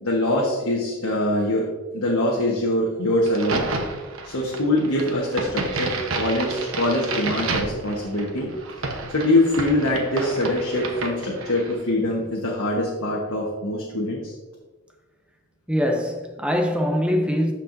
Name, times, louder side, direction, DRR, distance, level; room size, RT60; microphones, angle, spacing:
voice 1, 0.0-1.6 1.9-3.6 4.2-8.5 9.1-14.3, left 1 dB, 85° left, 1.2 m, -23 dB
Crack, 3.2-11.8, right 3 dB, 70° right, 1.0 m, -30 dB
voice 2, 15.7-17.5, equal, 5° right, 0.5 m, -23 dB
13.0 x 4.6 x 2.6 m
head